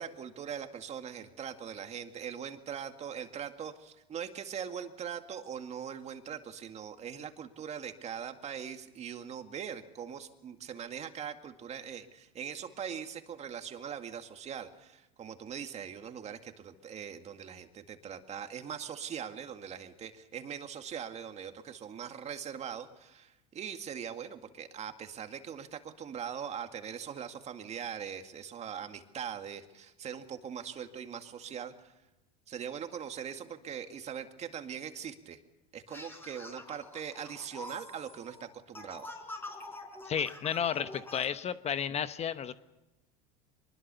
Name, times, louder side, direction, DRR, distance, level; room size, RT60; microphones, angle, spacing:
voice 1, 0.0-32.0 32.5-35.4 35.7-39.1, right 8 dB, 35° right, 7 dB, 2.1 m, -41 dB
sound 1, 35.9-41.3, left 2 dB, 10° left, 4.6 m, -46 dB
voice 2, 40.0-42.5, left 8 dB, 35° left, 12 dB, 1.0 m, -32 dB
24.0 x 21.0 x 6.9 m, 0.99 s
supercardioid pair, 105°, 19 cm